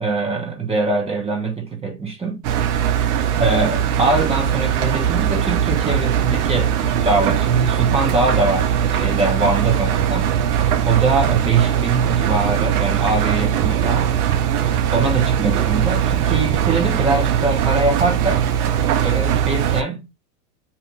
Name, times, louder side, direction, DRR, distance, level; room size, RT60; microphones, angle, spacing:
voice 1, 0.0-2.5 3.4-10.4 10.8-14.2 14.9-18.4 19.0-20.1, right 3 dB, 15° right, 0.8 m, -22 dB
Engine, 2.4-19.8, right 9 dB, 65° right, 0.7 m, -20 dB
2.8 x 2.7 x 3.3 m
hypercardioid pair, 115°, 48 cm